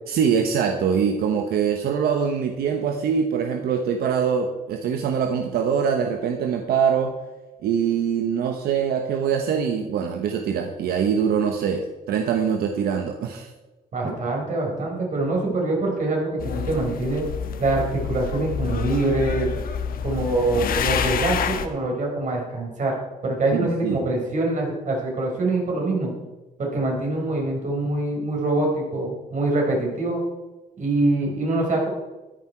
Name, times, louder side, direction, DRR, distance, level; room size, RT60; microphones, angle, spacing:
voice 1, 0.1-7.2 7.6-13.5 23.5-24.1, right 7 dB, 85° right, 5 dB, 1.1 m, -23 dB
voice 2, 13.9-17.2 17.6-19.5 20.0-22.9 23.2-26.1 26.6-30.2 30.8-31.9, right 2 dB, 55° right, 0 dB, 4.6 m, -24 dB
sound 1, 16.4-21.7, left 7 dB, 70° left, 1.2 m, -28 dB
13.5 x 10.0 x 4.5 m, 1.1 s
cardioid pair, 90°, 15 cm